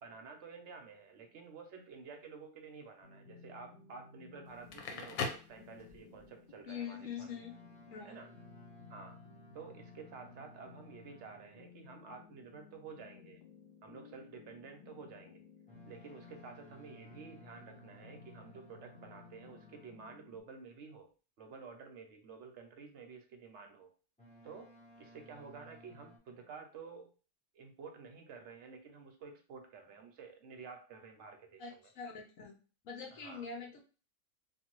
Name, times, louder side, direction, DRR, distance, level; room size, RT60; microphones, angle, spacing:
voice 1, 0.0-7.3 8.0-8.3 8.9-9.2 9.5-13.4 13.8-15.4 15.9-21.1 21.4-23.9 24.4-24.7 25.0-27.1 27.5-31.8 33.1-33.4, right 5 dB, 60° right, 3 dB, 0.9 m, -51 dB
sound 1, 3.0-20.4, left 5 dB, 45° left, 0.7 m, -58 dB
Crackle, 4.5-6.2, left 4 dB, 90° left, 1.1 m, -40 dB
voice 2, 6.7-7.6 7.9-8.2 31.6-32.6 32.8-33.8, left 6 dB, 70° left, 1 dB, 1.0 m, -44 dB
Boat Water vehicle, 7.2-11.7 15.7-20.2 24.2-26.2, equal, 5° left, 0.6 m, -59 dB
2.7 x 2.5 x 3.0 m, 0.36 s
omnidirectional pair, 1.5 m